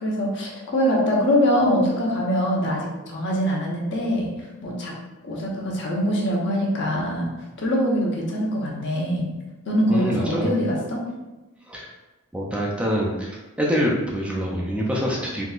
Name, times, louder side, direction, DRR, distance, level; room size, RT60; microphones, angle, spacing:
voice 1, 0.0-4.9 5.2-7.3 7.6-9.3 9.7-11.0, equal, 55° left, -3 dB, 0.8 m, -23 dB
voice 2, 9.9-10.5 11.7-11.9 12.3-15.4, equal, 5° right, -4 dB, 0.3 m, -25 dB
3.7 x 2.8 x 2.4 m, 1.1 s
head